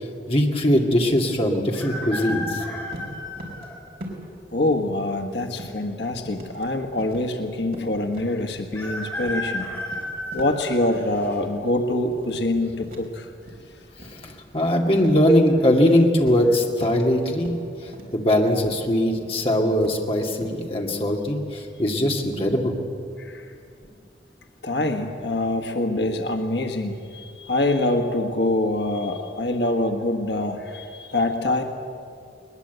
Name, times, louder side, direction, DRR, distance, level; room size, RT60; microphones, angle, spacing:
voice 1, 0.3-2.6 14.2-17.5 17.8-22.7, left 1 dB, 35° left, 1 dB, 2.2 m, -21 dB
sound 1, 1.7-3.8 4.4-4.5 5.6-6.2 6.5-6.6 6.8-6.9 8.7-11.4 11.9-12.3 13.4-13.8 14.0-14.1 14.7-15.0 15.5-15.7, left 1 dB, 15° left, 4.6 m, -33 dB
sound 2, 2.3-2.6 2.9-3.7 4.0-4.4 4.7-5.9 6.3-6.7 7.0-7.3 7.6-8.9 9.2-9.4 9.7-11.1 11.5-11.7 12.1-12.4 12.8-13.7 14.0-14.7 15.1-15.3 15.7-17.0 17.4-17.7 17.9-18.2 18.6-18.8 19.2-19.4 19.8-20.6, equal, 55° right, 4.2 m, -41 dB
voice 2, 4.5-9.7 10.3-13.3 23.2-23.5 24.6-31.6, left 2 dB, 80° left, 5 dB, 1.5 m, -25 dB
21.5 x 20.5 x 8.1 m, 2.4 s
head